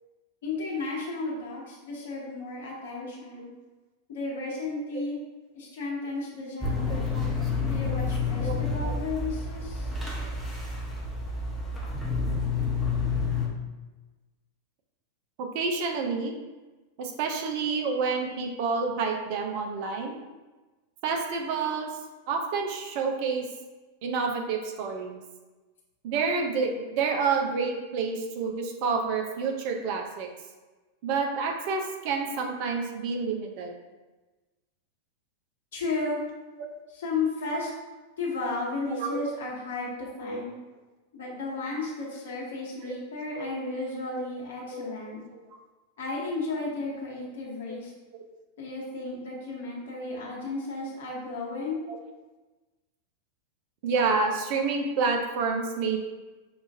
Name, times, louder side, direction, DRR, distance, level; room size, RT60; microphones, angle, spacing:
voice 1, 0.4-3.5 4.1-5.2 5.5-7.1 7.6-9.9 35.7-36.2 36.9-37.7 38.2-40.5 41.1-45.2 46.0-47.9 48.6-51.8, left 3 dB, 60° left, -4 dB, 1.1 m, -33 dB
sound 1, 6.6-13.5, left 4 dB, 5° right, 0.9 m, -29 dB
voice 2, 6.9-7.3 8.4-8.6 8.8-8.9 15.5-16.3 17.0-20.2 21.0-21.9 22.3-23.5 24.0-25.2 26.0-30.3 31.0-33.7 38.9-39.4 40.2-40.4 42.8-43.0 43.3-43.5 44.2-44.3 44.6-44.9 45.3-45.4 47.7-47.8 48.1-48.2 51.9-52.0 53.8-56.1, right 4 dB, 45° right, 2 dB, 0.5 m, -29 dB
6.1 x 2.5 x 2.5 m, 1.2 s
figure-of-eight pair, 90°, 0 cm